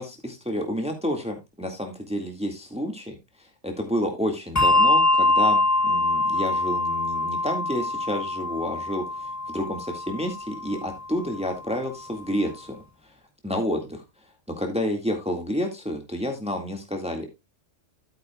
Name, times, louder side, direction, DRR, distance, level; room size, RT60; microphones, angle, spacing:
voice 1, 0.0-12.8 13.0-13.1 13.4-14.0 14.6-17.3, equal, 5° right, 3 dB, 1.8 m, -30 dB
Bell, 4.6-11.4, left 2 dB, 25° left, 0.3 m, -24 dB
12.5 x 9.0 x 2.3 m, 0.22 s
omnidirectional pair, 1.3 m